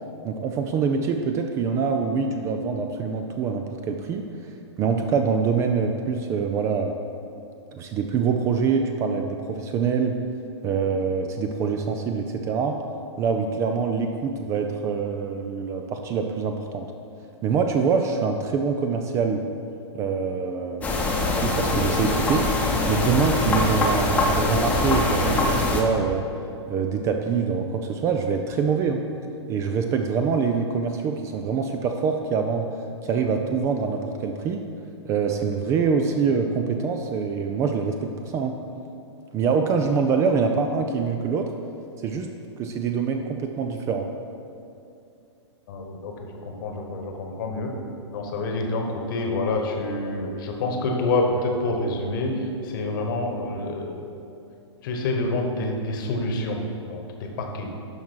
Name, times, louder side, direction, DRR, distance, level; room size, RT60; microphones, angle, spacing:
voice 1, 0.2-4.2 4.8-6.9 7.7-10.2 10.6-12.8 13.2-16.9 17.4-19.4 19.9-20.9 21.4-22.5 22.9-26.2 26.7-29.0 29.5-32.7 33.0-34.6 35.0-38.6 39.3-41.4 42.0-42.3 42.6-44.1, right 5 dB, 20° right, 4 dB, 0.4 m, -25 dB
sound 1, 20.8-25.8, left 2 dB, 10° left, 0.9 m, -23 dB
voice 2, 45.7-47.7 48.1-54.0 54.8-57.7, left 2 dB, 45° left, 2 dB, 1.2 m, -27 dB
12.0 x 4.6 x 4.5 m, 2.6 s
figure-of-eight pair, 110°, 15 cm